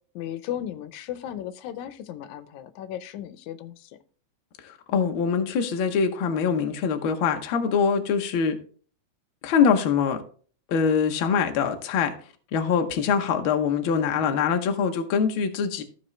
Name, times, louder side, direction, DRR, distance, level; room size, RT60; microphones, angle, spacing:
voice 1, 0.2-3.9, left 11 dB, 85° left, 2.0 m, -35 dB
voice 2, 4.6-8.6 9.4-10.2 10.7-12.1 12.5-15.8, left 6 dB, 65° left, 1.3 m, -23 dB
14.5 x 4.8 x 3.2 m
omnidirectional pair, 3.3 m